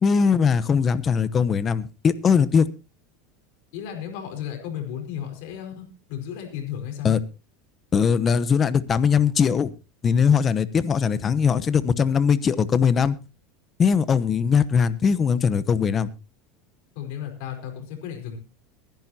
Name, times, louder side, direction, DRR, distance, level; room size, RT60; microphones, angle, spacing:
voice 1, 0.0-2.7 7.0-7.2 7.9-9.7 10.0-13.2 13.8-16.1, left 6 dB, 25° left, 1.0 m, -20 dB
voice 2, 3.7-7.2 16.9-18.4, left 9 dB, 70° left, 4.9 m, -34 dB
23.0 x 10.5 x 2.8 m
supercardioid pair, 135°, 0 cm